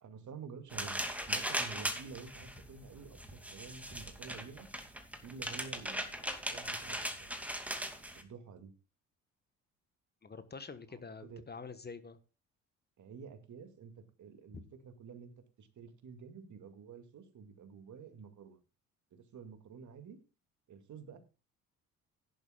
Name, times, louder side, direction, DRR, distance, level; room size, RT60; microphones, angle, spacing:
voice 1, 0.0-3.2 3.5-4.7 5.2-7.5 8.1-8.7 10.9-11.4 13.0-13.9 14.2-15.3 15.6-18.6 19.1-20.2 20.7-21.2, right 5 dB, 50° right, 8 dB, 2.3 m, -50 dB
sound 1, 0.7-8.2, equal, 5° right, 2.4 m, -39 dB
voice 2, 10.2-12.2 14.5-14.6, left 5 dB, 25° left, 11 dB, 1.3 m, -46 dB
16.5 x 11.0 x 2.4 m, 0.32 s
figure-of-eight pair, 50°, 39 cm